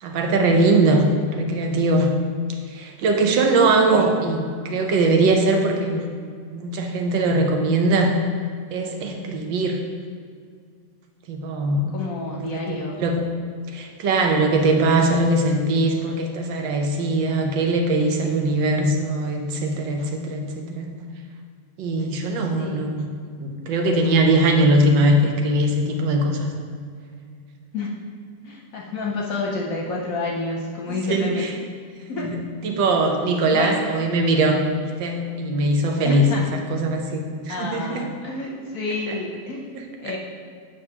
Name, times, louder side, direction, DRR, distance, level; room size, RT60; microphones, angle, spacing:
voice 1, 0.0-2.1 2.7-6.1 6.5-8.1 8.7-9.8 11.3-11.9 12.3-13.3 13.7-20.9 21.8-26.5 30.9-31.5 32.1-34.6 35.0-38.1 39.1-39.2 39.7-40.1, right 2 dB, 80° right, 3 dB, 1.5 m, -21 dB
voice 2, 11.9-13.0 22.5-22.9 27.7-28.0 28.4-31.4 32.1-32.3 33.5-33.8 36.0-36.4 37.5-39.7 40.0-40.2, left 3 dB, 60° left, -1 dB, 1.0 m, -29 dB
7.9 x 5.4 x 2.9 m, 2.1 s
omnidirectional pair, 2.0 m